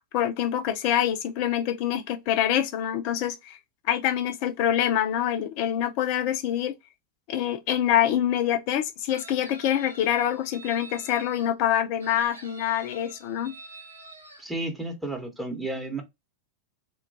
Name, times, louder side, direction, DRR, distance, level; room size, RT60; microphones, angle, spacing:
voice 1, 0.1-3.6 3.9-6.7 7.3-13.5, left 10 dB, 45° left, 0.4 m, -25 dB
Chicken rooster, 9.1-11.5 12.0-14.4, right 2 dB, 75° right, 0.7 m, -46 dB
voice 2, 14.4-16.0, right 2 dB, 5° right, 0.8 m, -32 dB
2.8 x 2.2 x 2.5 m
figure-of-eight pair, 90°, 0 cm